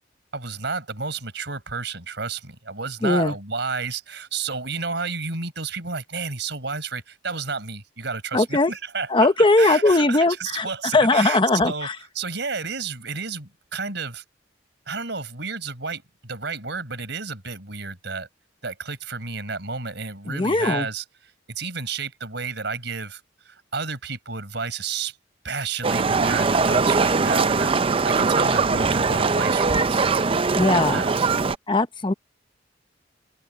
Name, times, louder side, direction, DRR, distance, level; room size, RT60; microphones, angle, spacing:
voice 1, 0.3-9.3 9.6-11.9 12.2-14.2 14.9-18.3 18.6-21.0 21.5-23.2 23.5-25.2 25.4-30.1 30.9-31.3, right 4 dB, 65° right, 5.2 m, -31 dB
voice 2, 3.0-3.3 8.3-8.7 9.1-10.7 10.9-12.0 20.3-20.9 30.5-31.0 31.7-32.1, left 2 dB, 25° left, 0.8 m, -19 dB
Livestock farm animals working animals, 25.8-31.6, right 4 dB, 30° right, 0.5 m, -21 dB
head